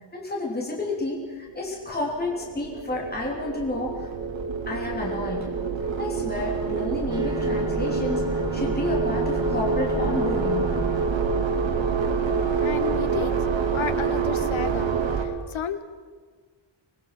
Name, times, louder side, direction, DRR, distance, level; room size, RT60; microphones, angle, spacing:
voice 1, 0.1-4.1 4.7-5.5 6.0-10.7, left 2 dB, 20° left, -2 dB, 3.3 m, -31 dB
sound 1, 1.6-15.3, right 5 dB, 70° right, 2.1 m, -26 dB
sound 2, 7.1-11.1, right 2 dB, 10° right, 2.3 m, -36 dB
voice 2, 12.6-13.4 13.7-15.8, left 8 dB, 90° left, 10 dB, 1.5 m, -32 dB
26.0 x 20.0 x 6.0 m, 1.5 s
wide cardioid pair, 145°, 46 cm